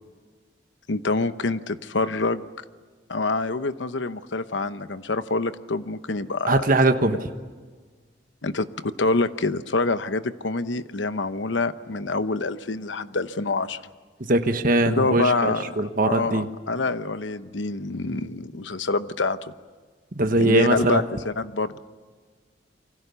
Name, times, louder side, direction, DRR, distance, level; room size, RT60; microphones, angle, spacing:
voice 1, 0.9-2.4 3.1-6.7 8.4-13.8 14.8-19.5 20.4-21.8, left 3 dB, 90° left, 12 dB, 1.0 m, -26 dB
voice 2, 6.5-7.2 14.3-16.5 20.1-21.0, right 2 dB, 50° right, 7 dB, 1.3 m, -21 dB
28.0 x 24.5 x 7.0 m, 1.5 s
head